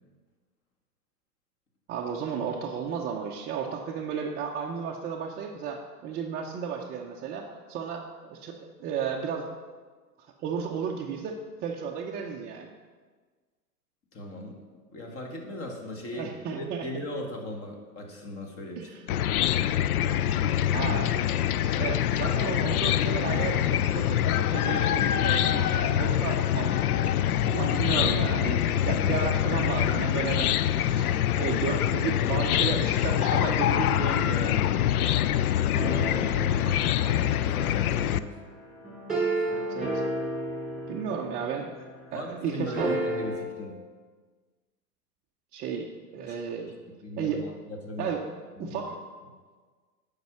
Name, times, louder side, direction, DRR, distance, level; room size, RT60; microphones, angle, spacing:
voice 1, 1.9-9.5 10.4-12.7 16.1-16.9 18.8-19.1 20.7-21.1 21.6-31.0 31.4-34.7 39.4-40.0 40.9-41.7 42.1-43.0 45.5-46.7 47.2-47.4 48.0-48.2 48.6-49.0, right 7 dB, 20° right, -2 dB, 0.5 m, -33 dB
voice 2, 14.1-14.6 14.9-18.9 35.8-36.7 37.0-38.4 39.4-39.5 42.1-43.8 46.3-46.4 47.0-48.2 48.6-48.8, left 1 dB, 30° left, 2 dB, 1.8 m, -38 dB
Chicken rooster / Cricket, 19.1-38.2, left 11 dB, 65° left, 0.5 m, -25 dB
sound 1, 35.7-42.0 42.7-43.4, right 2 dB, ahead, 3.2 m, -33 dB
9.2 x 5.4 x 6.0 m, 1.5 s
figure-of-eight pair, 100°, 48 cm